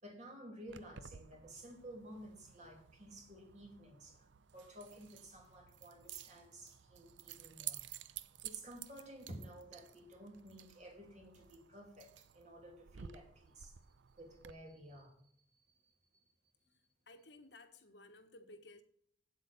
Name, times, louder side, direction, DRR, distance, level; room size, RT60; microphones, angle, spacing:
voice 1, 0.0-7.9 8.4-13.8 14.2-15.9 16.7-16.8, right 1 dB, 40° right, 2.7 m, -53 dB
Keys jangling, 0.7-14.5, right 11 dB, 80° right, 0.5 m, -53 dB
voice 2, 17.1-18.8, left 2 dB, 65° left, 1.3 m, -57 dB
8.8 x 8.1 x 6.5 m
head